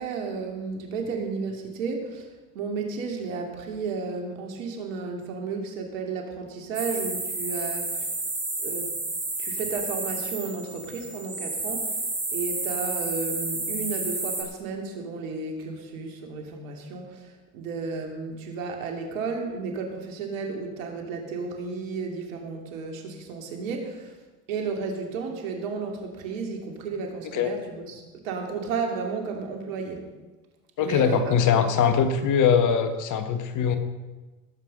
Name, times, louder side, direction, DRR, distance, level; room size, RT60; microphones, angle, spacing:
voice 1, 0.0-2.3 2.5-8.1 8.6-8.9 9.4-12.0 12.3-24.1 24.5-30.1 30.8-31.7, right 4 dB, 80° right, 3 dB, 2.9 m, -33 dB
sound 1, 6.7-14.4, right 2 dB, 10° right, 5.1 m, -31 dB
voice 2, 30.8-33.8, left 7 dB, 50° left, 8 dB, 1.7 m, -22 dB
18.5 x 8.2 x 5.4 m, 1.2 s
hypercardioid pair, 90°, 40 cm